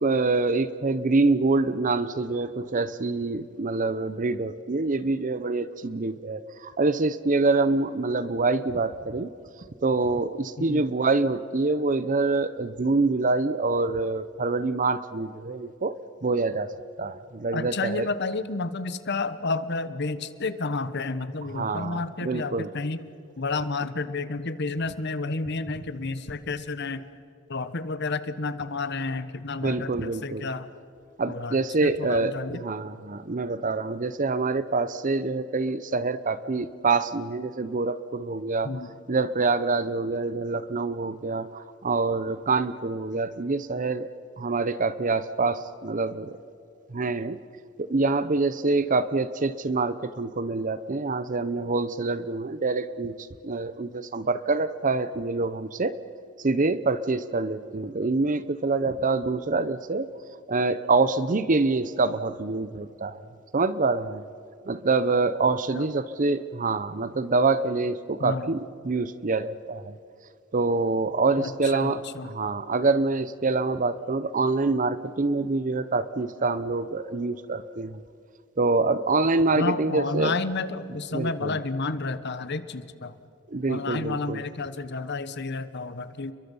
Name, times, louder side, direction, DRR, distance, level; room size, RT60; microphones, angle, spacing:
voice 1, 0.0-9.3 9.8-16.0 16.2-16.7 17.0-18.1 21.5-22.7 29.6-30.5 31.2-38.7 39.1-44.1 44.4-46.4 46.9-47.4 47.8-53.1 53.4-56.0 56.4-60.1 60.5-63.2 63.5-64.2 64.7-70.0 70.5-78.0 78.6-80.3 81.1-81.6 83.5-84.4, right 3 dB, 40° right, 14 dB, 0.7 m, -26 dB
voice 2, 17.5-23.0 23.4-27.0 27.5-30.7 31.3-32.6 38.6-38.9 65.7-65.9 68.2-68.5 71.4-72.3 79.5-83.2 83.7-86.3, left 3 dB, 55° left, 13 dB, 1.2 m, -31 dB
29.5 x 23.0 x 5.5 m, 2.6 s
head